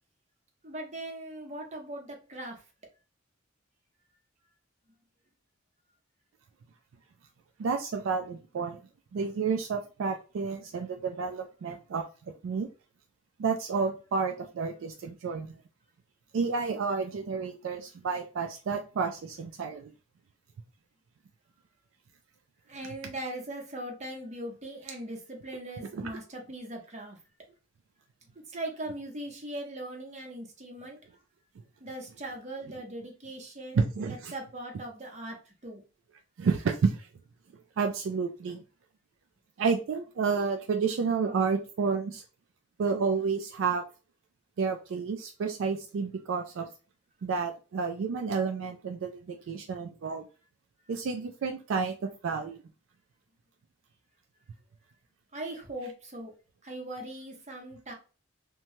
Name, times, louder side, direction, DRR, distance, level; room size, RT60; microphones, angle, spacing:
voice 1, 0.6-2.6 22.7-27.2 28.5-31.0 31.8-33.8 34.1-35.8 55.3-56.3 56.6-57.9, right 1 dB, 35° right, 1 dB, 0.8 m, -40 dB
voice 2, 7.6-8.8 9.1-12.0 12.4-12.7 13.4-15.6 16.3-19.9 25.9-26.0 33.7-34.3 36.4-37.1 37.8-38.6 39.6-42.2 42.8-43.8 44.6-46.7 47.2-50.2 50.9-52.6, right 5 dB, 70° right, 5 dB, 0.3 m, -30 dB
3.0 x 2.2 x 2.6 m, 0.34 s
head